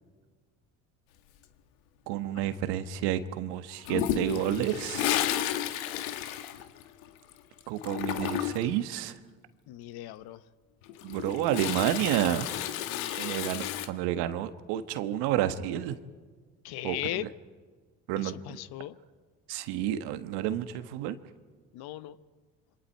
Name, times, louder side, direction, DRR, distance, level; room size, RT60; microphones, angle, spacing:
voice 1, 2.1-5.3 7.7-9.2 11.0-12.5 13.1-16.0 16.8-17.3 18.1-18.6 19.5-21.2, right 12 dB, 70° right, 10 dB, 1.5 m, -30 dB
Toilet flush, 3.8-7.3 7.6-8.8 10.8-13.9, left 12 dB, 80° left, 1.3 m, -32 dB
voice 2, 9.7-10.4 12.9-13.7 16.6-17.3 18.2-18.9 21.7-22.2, left 15 dB, 65° left, 15 dB, 1.1 m, -38 dB
27.5 x 25.0 x 4.6 m, 1.5 s
hypercardioid pair, 65°, 41 cm